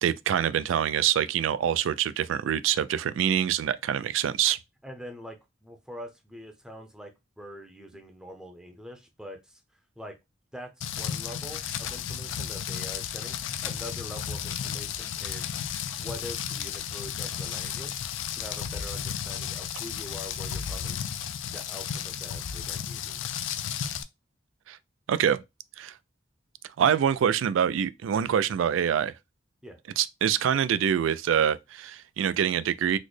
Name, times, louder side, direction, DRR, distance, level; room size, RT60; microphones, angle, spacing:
voice 1, 0.0-4.6 24.7-24.8 25.1-25.4 25.8-25.9 26.8-29.1 30.0-33.0, right 9 dB, 85° right, 0.3 m, -25 dB
voice 2, 4.8-5.4 5.6-10.2 10.5-15.5 16.0-18.0 18.3-21.1 21.5-23.2 29.6-29.8, equal, 5° right, 0.5 m, -44 dB
Rain, 10.8-24.0, left 8 dB, 80° left, 0.4 m, -33 dB
4.0 x 2.1 x 3.1 m
head